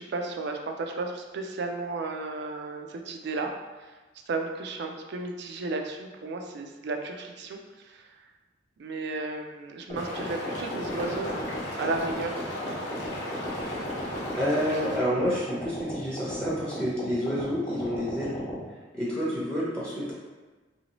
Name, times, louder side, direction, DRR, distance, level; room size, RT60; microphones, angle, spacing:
voice 1, 0.0-3.5 4.3-7.6 7.8-8.1 8.8-11.5 11.8-12.4, right 3 dB, 65° right, 3 dB, 0.4 m, -33 dB
sound 1, 9.9-15.0, left 1 dB, 85° left, 0.7 m, -36 dB
sound 2, 9.9-18.6, equal, 45° left, 0.8 m, -36 dB
voice 2, 14.4-18.3 18.9-20.1, equal, 5° left, -8 dB, 0.6 m, -29 dB
3.0 x 2.7 x 2.9 m, 1.3 s
head